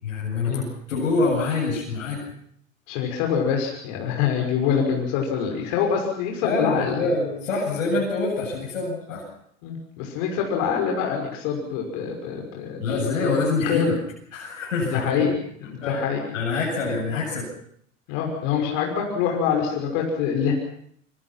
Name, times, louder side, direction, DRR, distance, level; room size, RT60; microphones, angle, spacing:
voice 1, 0.0-2.2 6.4-9.2 12.8-14.0 14.3-15.4 15.8-16.0 16.3-17.5, left 3 dB, 80° left, -3 dB, 8.0 m, -25 dB
voice 2, 2.9-7.1 9.6-13.3 13.6-14.0 14.8-15.3 15.6-16.2 18.1-20.5, left 7 dB, 60° left, 1 dB, 6.2 m, -25 dB
26.0 x 24.5 x 6.0 m, 0.67 s
hypercardioid pair, 85°, 39 cm